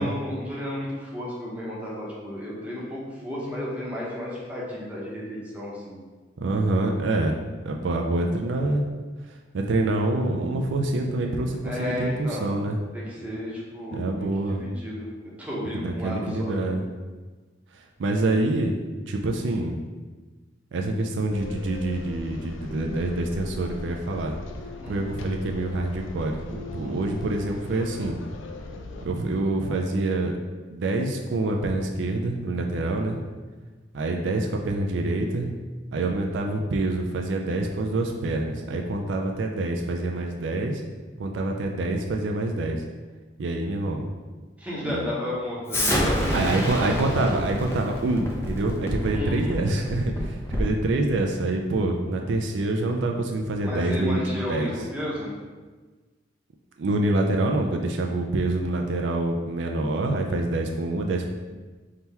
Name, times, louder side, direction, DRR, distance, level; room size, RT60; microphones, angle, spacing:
voice 1, 0.0-6.0 11.6-12.5 12.9-16.7 24.8-25.0 44.6-46.5 46.7-47.1 49.1-49.6 53.6-55.3, left 1 dB, 10° right, -6 dB, 0.9 m, -33 dB
voice 2, 6.4-8.8 9.3-12.8 13.9-14.6 15.7-16.8 17.7-18.8 19.1-19.8 20.7-24.4 24.9-28.2 29.0-30.3 30.7-33.2 33.9-35.5 35.9-40.8 41.2-42.8 43.4-44.0 44.8-45.1 46.3-54.7 56.8-61.3, right 2 dB, 70° right, 2 dB, 0.4 m, -26 dB
sound 1, 21.3-29.1, left 2 dB, 90° left, 0.4 m, -39 dB
Explosion, 45.7-50.8, equal, 15° left, 0.6 m, -28 dB
3.7 x 2.9 x 4.2 m, 1.3 s
head